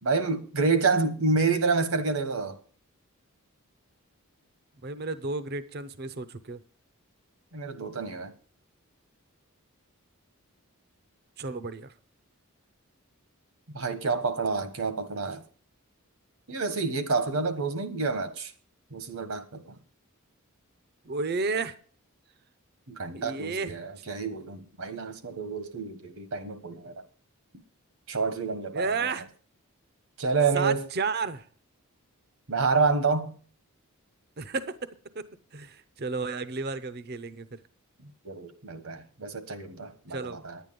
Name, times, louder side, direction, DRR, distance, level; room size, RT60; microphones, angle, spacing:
voice 1, 0.0-2.6 7.5-8.3 13.7-15.4 16.5-18.5 18.9-19.7 22.9-27.0 28.1-29.1 30.2-30.8 32.5-33.4 38.2-40.6, right 4 dB, 70° right, 1.3 m, -28 dB
voice 2, 4.8-6.6 11.4-11.9 21.0-21.7 23.1-23.7 28.7-29.3 30.5-31.5 34.4-35.3 35.5-37.6 40.1-40.4, right 4 dB, 45° right, 0.7 m, -32 dB
10.5 x 9.3 x 5.2 m
head